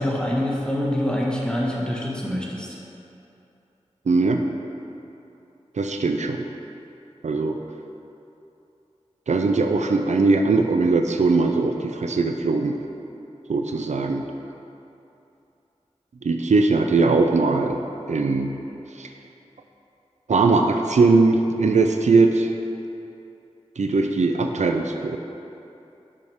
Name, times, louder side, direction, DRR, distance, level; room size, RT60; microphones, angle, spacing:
voice 1, 0.0-2.7, left 1 dB, 10° left, -4 dB, 1.7 m, -25 dB
voice 2, 4.1-4.4 5.8-6.5 7.2-7.6 9.3-12.8 13.5-14.2 16.2-17.8 18.1-18.5 19.0-19.1 20.3-22.5 23.8-25.2, right 3 dB, 80° right, 5 dB, 0.5 m, -20 dB
10.0 x 6.4 x 3.6 m, 2.8 s
cardioid pair, 40°, 12 cm